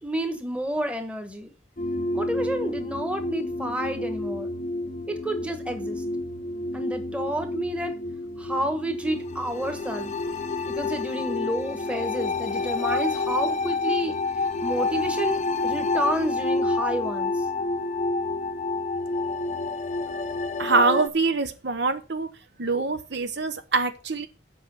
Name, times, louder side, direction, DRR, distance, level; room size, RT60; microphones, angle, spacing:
voice 1, 0.0-1.5 2.1-4.5 5.1-6.0 6.7-7.9 8.4-10.1 10.7-14.1 14.6-17.4, right 1 dB, 5° right, 1.4 m, -30 dB
sound 1, 1.8-21.1, left 3 dB, 35° left, 0.7 m, -29 dB
voice 2, 20.6-22.3 22.6-24.3, right 3 dB, 60° right, 0.8 m, -24 dB
7.9 x 5.8 x 7.7 m
head